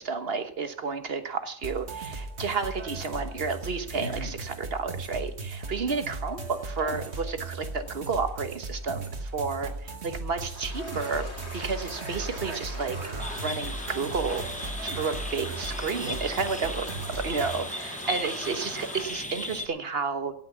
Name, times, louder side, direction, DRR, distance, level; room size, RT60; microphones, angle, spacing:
voice 1, 0.0-11.3 11.5-13.0 13.4-14.4 14.8-16.9 17.2-20.3, right 5 dB, 65° right, 9 dB, 1.5 m, -31 dB
sound 1, 1.6-17.6, right 2 dB, 85° right, 1.8 m, -37 dB
sound 2, 10.5-19.0, left 1 dB, 85° left, 3.8 m, -42 dB
sound 3, 13.2-19.7, left 1 dB, 5° left, 1.0 m, -37 dB
16.5 x 6.2 x 8.3 m, 0.64 s
omnidirectional pair, 1.1 m